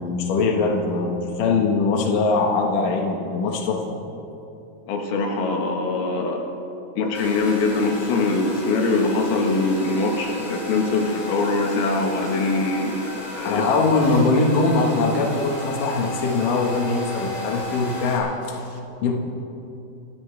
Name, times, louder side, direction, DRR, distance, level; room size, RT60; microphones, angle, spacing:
voice 1, 0.0-4.0 13.4-19.1, left 3 dB, 65° left, 0 dB, 3.0 m, -22 dB
voice 2, 4.9-6.4 7.0-13.6, left 3 dB, 85° left, 1 dB, 3.3 m, -23 dB
Domestic sounds home sounds, 7.1-18.2, left 1 dB, 15° left, 3.0 m, -34 dB
29.0 x 13.5 x 3.4 m, 2.8 s
omnidirectional pair, 4.3 m